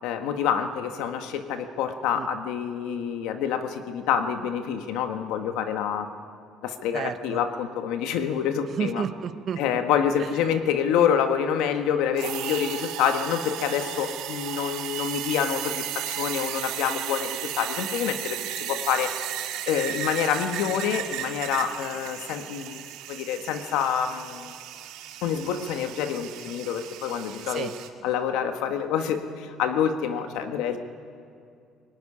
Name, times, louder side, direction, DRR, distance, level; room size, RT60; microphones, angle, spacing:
voice 1, 0.0-6.1 6.6-9.0 9.6-19.1 19.7-22.8 23.1-24.5 25.2-27.7 28.0-30.8, left 8 dB, 75° left, 7 dB, 1.5 m, -27 dB
voice 2, 6.9-7.4 8.7-9.8 27.5-27.7, right 7 dB, 35° right, 11 dB, 0.9 m, -31 dB
sound 1, 12.1-27.9, right 11 dB, 75° right, 2.0 m, -35 dB
24.0 x 18.0 x 10.0 m, 2.4 s
cardioid pair, 170°, 0 cm